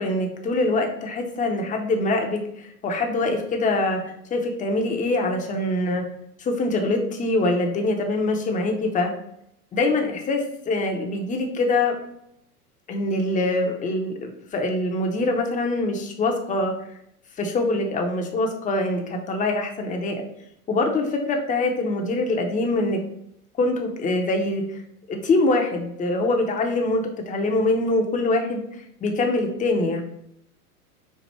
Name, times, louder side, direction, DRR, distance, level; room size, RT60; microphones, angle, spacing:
voice 1, 0.0-4.0 4.3-6.0 6.4-9.1 9.7-12.0 12.9-16.7 17.4-20.2 20.7-23.0 23.6-24.8 25.1-28.6 29.0-30.0, left 2 dB, 15° left, 2 dB, 0.7 m, -24 dB
4.6 x 2.4 x 4.2 m, 0.75 s
hypercardioid pair, 100°, 45 cm